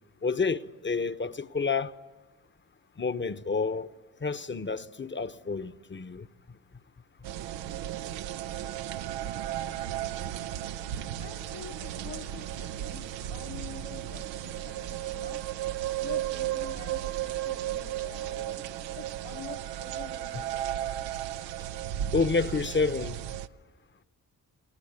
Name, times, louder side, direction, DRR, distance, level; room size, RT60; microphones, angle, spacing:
voice 1, 0.2-1.9 3.0-3.9 4.2-6.3 22.1-23.2, left 4 dB, 25° left, 1.0 m, -29 dB
sound 1, 7.2-23.5, right 12 dB, 90° right, 0.7 m, -34 dB
voice 2, 11.2-15.4 16.0-18.6 19.0-20.9, left 7 dB, 65° left, 1.8 m, -47 dB
29.0 x 18.5 x 9.6 m
supercardioid pair, 50°, 43 cm